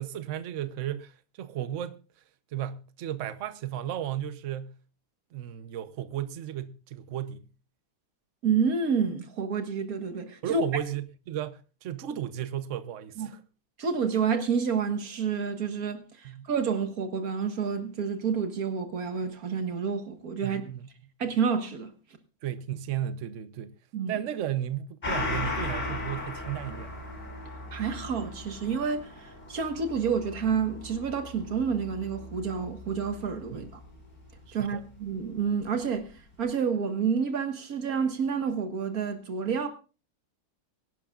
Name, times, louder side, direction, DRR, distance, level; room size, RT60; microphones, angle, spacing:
voice 1, 0.0-2.0 2.5-4.8 5.3-7.5 10.4-13.4 16.2-16.5 20.4-20.9 22.4-23.7 24.1-26.9 33.5-33.7 34.5-34.9, right 11 dB, 85° right, 0.6 m, -34 dB
voice 2, 8.4-10.6 13.2-13.3 13.8-20.6 21.2-21.9 23.9-24.2 27.7-33.7 34.5-36.1 36.4-39.7, right 6 dB, 45° right, 1.8 m, -29 dB
Gong, 25.0-34.0 34.3-34.4, left 2 dB, 25° left, 5.4 m, -37 dB
23.5 x 11.0 x 2.4 m
omnidirectional pair, 2.4 m